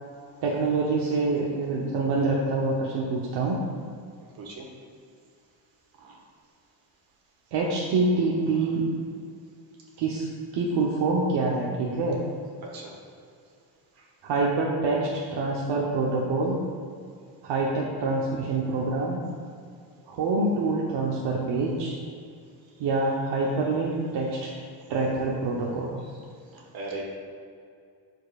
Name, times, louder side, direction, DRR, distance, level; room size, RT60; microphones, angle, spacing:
voice 1, 0.4-3.6 7.5-8.9 10.0-10.3 10.5-12.2 14.2-16.6 17.4-19.2 20.1-22.0 22.8-24.5 24.9-26.0, right 3 dB, 70° right, -3 dB, 0.9 m, -26 dB
voice 2, 26.5-27.0, right 2 dB, 55° right, -2 dB, 1.5 m, -38 dB
12.5 x 4.6 x 2.4 m, 2.4 s
cardioid pair, 170°, 43 cm